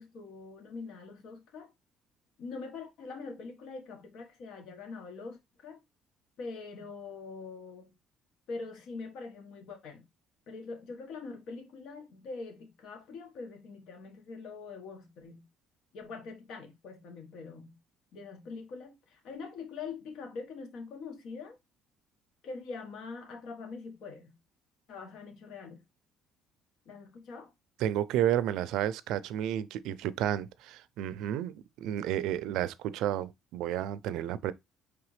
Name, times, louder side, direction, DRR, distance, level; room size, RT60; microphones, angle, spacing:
voice 1, 0.0-1.7 2.4-5.8 6.4-7.9 8.5-10.0 10.5-15.5 15.9-17.8 18.1-21.6 22.4-24.4 24.9-25.8 26.8-27.5, left 4 dB, 70° left, 1.2 m, -43 dB
voice 2, 27.8-34.5, right 11 dB, 80° right, 0.4 m, -31 dB
4.9 x 3.4 x 3.1 m
cardioid pair, 110°, 0 cm